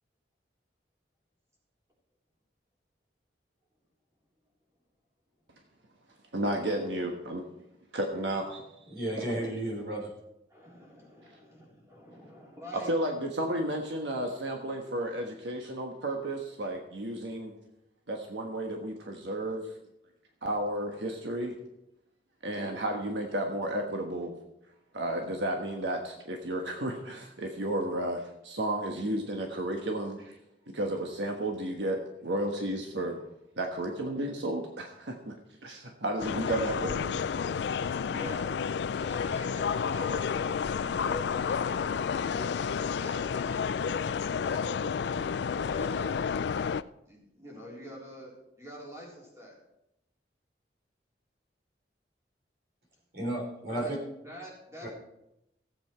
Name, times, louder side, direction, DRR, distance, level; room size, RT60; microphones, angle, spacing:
voice 1, 6.3-7.4 7.9-8.7 12.9-17.5 18.1-19.7 20.4-21.5 22.4-24.3 24.9-30.4 30.7-33.2 33.5-35.3 35.6-37.1, right 1 dB, 80° right, 2 dB, 1.3 m, -32 dB
voice 2, 8.9-10.1 53.1-53.8 54.8-54.9, right 1 dB, 55° right, 0 dB, 3.8 m, -33 dB
voice 3, 10.5-12.9 38.0-38.5 38.9-40.4 40.6-41.9 42.3-43.7 44.4-46.2 47.1-49.6 53.7-53.9 54.2-54.9, left 1 dB, 15° right, -4 dB, 3.6 m, -45 dB
sound 1, 36.2-46.8, left 6 dB, 70° left, 0.4 m, -30 dB
15.5 x 8.0 x 4.5 m, 0.85 s
head